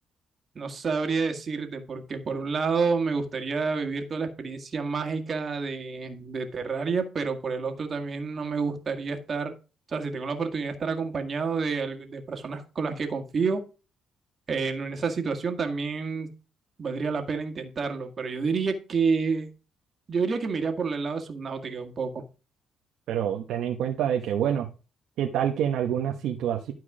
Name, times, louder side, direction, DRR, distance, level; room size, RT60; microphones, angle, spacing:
voice 1, 0.6-9.5 9.9-13.6 14.5-16.3 16.8-19.5 20.1-22.2, right 5 dB, 45° right, 5 dB, 1.9 m, -29 dB
voice 2, 23.1-24.7 25.2-26.7, right 9 dB, 85° right, 3 dB, 1.1 m, -27 dB
12.5 x 4.7 x 4.9 m, 0.34 s
cardioid pair, 90°, 0 cm